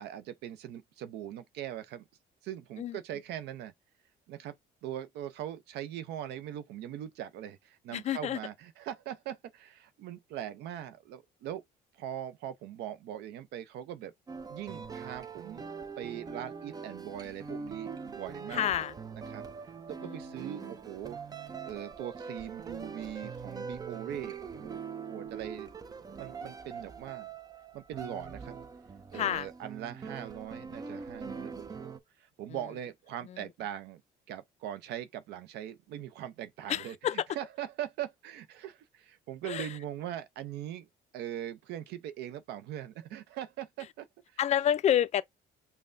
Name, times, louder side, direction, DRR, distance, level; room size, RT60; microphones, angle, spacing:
voice 1, 0.0-2.1 2.4-3.7 4.3-4.5 4.8-11.6 11.9-14.1 14.5-15.7 16.0-18.7 19.3-19.4 19.9-21.2 21.7-25.7 26.2-27.3 27.7-28.6 29.1-34.0 34.3-37.0 37.3-40.9 41.1-44.4, right 11 dB, 80° right, 0.6 m, -41 dB
voice 2, 7.9-8.4 18.5-18.9 20.0-20.2 20.6-20.7 29.1-29.5 33.2-33.5 36.7-37.2 39.4-39.8 44.4-45.2, left 10 dB, 40° left, 0.4 m, -29 dB
sound 1, 14.3-32.0, right 5 dB, 20° right, 0.4 m, -43 dB
5.4 x 2.1 x 2.5 m
cardioid pair, 110°, 17 cm